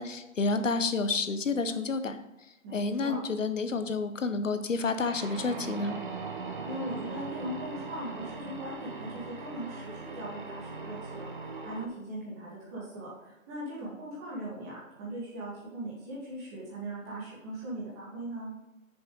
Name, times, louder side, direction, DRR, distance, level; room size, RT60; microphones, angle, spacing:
voice 1, 0.0-2.2 2.7-5.9, left 4 dB, 65° left, 9 dB, 1.0 m, -29 dB
voice 2, 2.6-3.2 6.6-18.5, right 1 dB, 10° right, -8 dB, 2.0 m, -39 dB
sound 1, 5.0-11.9, right 4 dB, 35° right, 0.9 m, -40 dB
9.0 x 6.8 x 3.9 m, 0.97 s
hypercardioid pair, 170°, 40 cm